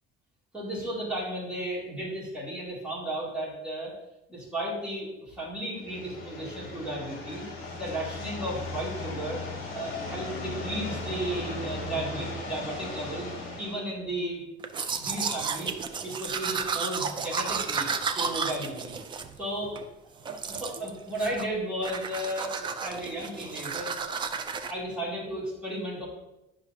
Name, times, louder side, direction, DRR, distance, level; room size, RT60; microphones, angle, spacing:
voice 1, 0.5-3.9 4.3-7.5 7.8-9.4 9.7-14.5 15.0-17.9 18.1-19.0 19.4-19.7 20.5-23.9 24.7-26.1, right 1 dB, 5° right, -8 dB, 2.6 m, -34 dB
sound 1, 5.8-13.8, left 2 dB, 45° left, 2.1 m, -37 dB
Domestic sounds home sounds, 14.6-19.9 20.3-20.9 21.2-21.6 21.8-24.7, right 5 dB, 20° right, 0.4 m, -32 dB
10.5 x 5.7 x 2.8 m, 0.92 s
cardioid pair, 170°, 21 cm